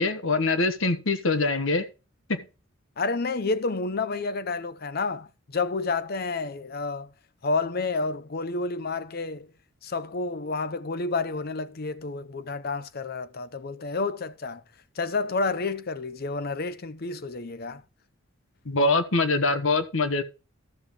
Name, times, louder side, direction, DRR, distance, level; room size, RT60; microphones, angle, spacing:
voice 1, 0.0-1.9 2.3-2.4 18.6-20.2, left 3 dB, 70° left, 1.3 m, -24 dB
voice 2, 3.0-7.1 7.4-9.5 9.8-14.6 15.0-17.8, left 3 dB, 45° left, 0.7 m, -30 dB
13.0 x 7.3 x 3.7 m
head